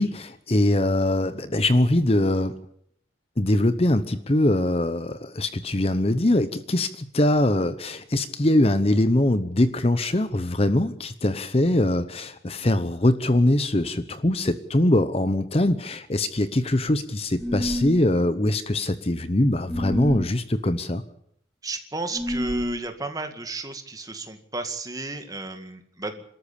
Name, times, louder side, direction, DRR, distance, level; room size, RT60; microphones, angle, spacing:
voice 1, 0.0-2.5 3.4-21.0, left 1 dB, 30° left, 12 dB, 0.9 m, -22 dB
sound 1, 17.4-18.0 19.7-20.3 22.1-22.8, left 1 dB, ahead, 1.4 m, -28 dB
voice 2, 21.6-26.2, right 3 dB, 20° right, 7 dB, 2.1 m, -33 dB
27.0 x 13.5 x 8.6 m, 0.70 s
head